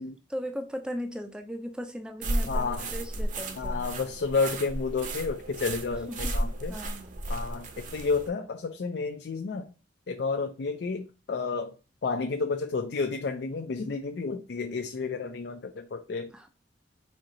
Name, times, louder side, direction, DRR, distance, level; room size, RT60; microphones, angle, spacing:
voice 1, 0.3-3.9 6.1-7.2 16.3-16.5, equal, 5° right, 0.4 m, -38 dB
sound 1, 2.2-8.3, right 1 dB, 40° right, 0.7 m, -33 dB
voice 2, 2.5-2.9 3.6-6.8 7.3-9.7 10.1-11.8 12.0-16.3, left 4 dB, 60° left, 0.4 m, -31 dB
4.4 x 2.7 x 3.8 m
head